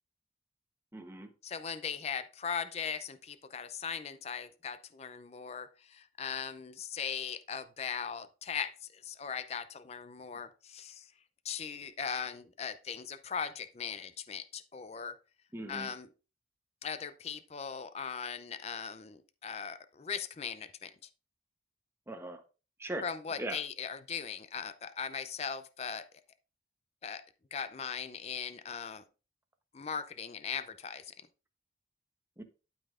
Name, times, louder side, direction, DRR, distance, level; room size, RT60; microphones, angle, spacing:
voice 1, 0.9-1.3 15.5-15.9 22.1-22.4 22.8-23.1 23.4-23.6 32.4-32.5, right 1 dB, 15° right, 5 dB, 0.9 m, -39 dB
voice 2, 1.4-11.1 11.4-15.2 15.7-16.1 16.8-20.9 23.0-26.1 27.0-27.2 27.5-29.0 29.7-31.1, left 6 dB, 35° left, 11 dB, 0.4 m, -39 dB
12.0 x 5.5 x 2.5 m, 0.33 s
head